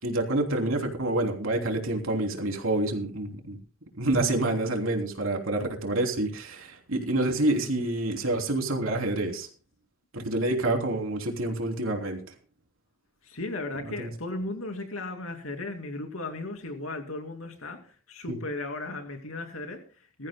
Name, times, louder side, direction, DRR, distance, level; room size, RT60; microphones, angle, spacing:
voice 1, 0.0-3.6 4.0-9.5 10.1-12.2 14.0-14.1 18.3-18.4, right 2 dB, 80° right, 3.1 m, -27 dB
voice 2, 13.2-20.3, left 2 dB, 85° left, 2.6 m, -36 dB
22.0 x 14.0 x 2.2 m
head